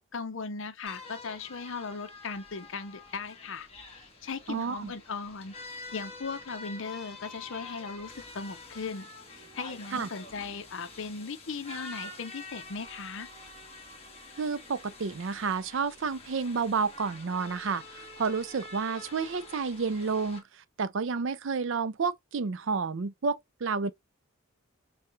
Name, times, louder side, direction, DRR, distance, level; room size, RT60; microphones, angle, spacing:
voice 1, 0.0-3.7 4.2-5.5 5.9-13.3, left 4 dB, 60° left, 0.6 m, -38 dB
sound 1, 0.9-20.4, left 3 dB, 25° left, 1.5 m, -47 dB
voice 2, 4.5-4.9 9.9-10.1 14.4-23.9, right 5 dB, 60° right, 0.5 m, -30 dB
6.5 x 2.3 x 2.6 m
head